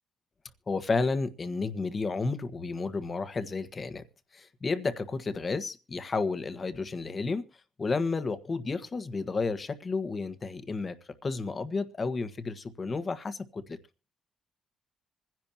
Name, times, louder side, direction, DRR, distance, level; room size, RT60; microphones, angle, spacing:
voice 1, 0.7-4.0 4.3-7.4 7.8-10.9 11.2-13.8, left 4 dB, 35° left, 1.4 m, -31 dB
26.0 x 10.5 x 2.9 m
cardioid pair, 90°, 0 cm